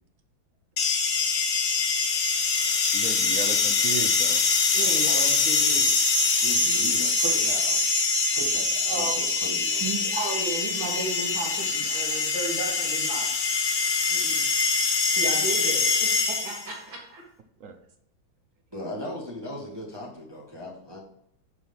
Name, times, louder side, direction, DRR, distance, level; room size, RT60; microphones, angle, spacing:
sound 1, 0.8-16.7, left 4 dB, 55° left, 1.4 m, -24 dB
voice 1, 2.7-4.7 17.6-17.8, right 6 dB, 60° right, 7 dB, 0.9 m, -36 dB
voice 2, 4.7-5.9 8.8-9.1 9.8-13.3 14.1-14.5 15.2-17.2, right 3 dB, 85° right, -6 dB, 2.8 m, -34 dB
voice 3, 6.4-7.8 8.3-9.9 18.7-21.0, left 1 dB, 15° right, -4 dB, 1.7 m, -37 dB
10.0 x 4.8 x 5.4 m, 0.72 s
omnidirectional pair, 2.1 m